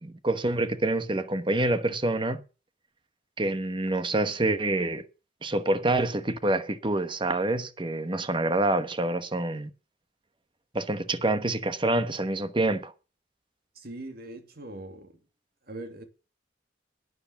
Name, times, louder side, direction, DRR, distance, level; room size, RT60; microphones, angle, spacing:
voice 1, 0.0-2.4 3.4-5.0 5.4-9.7 10.7-12.9, right 2 dB, 25° right, 1.1 m, -27 dB
voice 2, 13.7-15.2 15.6-16.0, right 2 dB, 55° right, 2.5 m, -41 dB
12.0 x 9.5 x 7.1 m
head